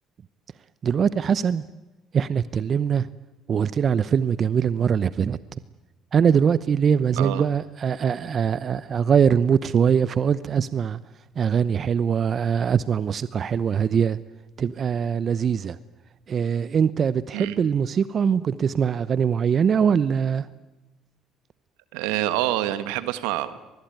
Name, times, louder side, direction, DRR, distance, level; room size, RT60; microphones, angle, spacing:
voice 1, 0.8-1.6 2.1-3.1 3.5-5.6 6.1-11.0 11.4-14.2 14.6-15.8 16.3-20.5, right 7 dB, 45° right, 17 dB, 0.8 m, -22 dB
voice 2, 21.9-23.5, right 14 dB, 80° right, 13 dB, 1.5 m, -26 dB
25.0 x 20.5 x 9.3 m, 1.1 s
supercardioid pair, 70°, 0 cm